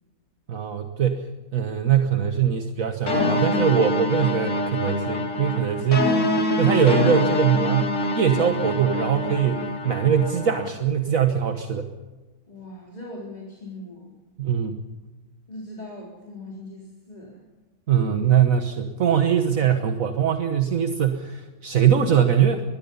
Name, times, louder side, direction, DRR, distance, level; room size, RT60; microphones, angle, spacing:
voice 1, 0.5-1.3 1.5-6.2 6.6-11.9 14.4-14.8 17.9-22.6, right 8 dB, 65° right, 6 dB, 1.7 m, -22 dB
sound 1, 3.1-10.7, left 1 dB, 55° left, 2.7 m, -25 dB
voice 2, 12.5-14.1 15.5-17.4, left 1 dB, 25° left, -3 dB, 4.1 m, -40 dB
24.0 x 21.5 x 5.6 m, 1.3 s
omnidirectional pair, 1.6 m